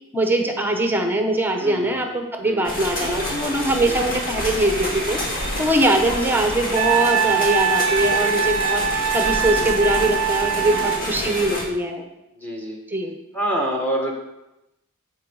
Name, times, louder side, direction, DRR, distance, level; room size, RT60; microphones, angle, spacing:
voice 1, 0.1-5.2 5.6-12.0 12.9-13.1, right 1 dB, 10° right, 4 dB, 0.9 m, -22 dB
voice 2, 1.6-2.0 2.4-2.7 3.9-4.0 5.9-6.0 9.5-9.7 10.6-11.3 12.4-12.8 13.3-14.1, equal, 10° left, 0 dB, 1.8 m, -28 dB
sound 1, 2.6-11.6, left 1 dB, 45° left, 2.1 m, -28 dB
Wind instrument woodwind instrument, 6.7-11.0, right 8 dB, 80° right, 0.5 m, -23 dB
14.0 x 4.7 x 4.9 m, 0.93 s
head